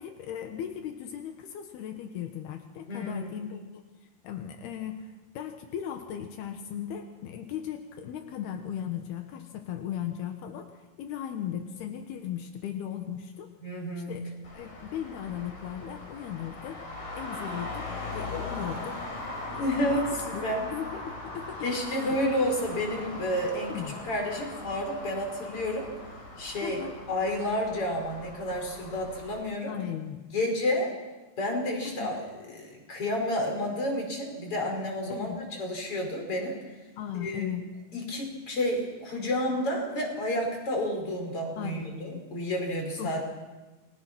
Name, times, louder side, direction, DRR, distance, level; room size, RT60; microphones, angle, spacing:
voice 1, 0.0-3.8 4.2-10.7 11.0-13.5 14.1-16.9 17.1-19.0 19.5-19.8 20.3-20.4 20.7-22.1 23.7-24.0 26.6-26.9 29.7-30.2 31.8-32.2 35.1-35.4 37.0-37.7 41.6-42.2 43.0-43.2, left 9 dB, 80° left, 5 dB, 3.3 m, -37 dB
voice 2, 2.9-3.4 13.6-14.2 19.6-20.7 21.6-25.9 26.4-26.8 27.1-29.7 30.3-30.9 31.4-36.5 37.1-37.5 37.9-43.2, left 1 dB, 35° left, 2 dB, 5.9 m, -30 dB
Traffic noise roadway noise, 14.4-29.4, left 2 dB, 60° left, 6.3 m, -40 dB
29.5 x 23.0 x 6.1 m, 1.2 s
omnidirectional pair, 4.5 m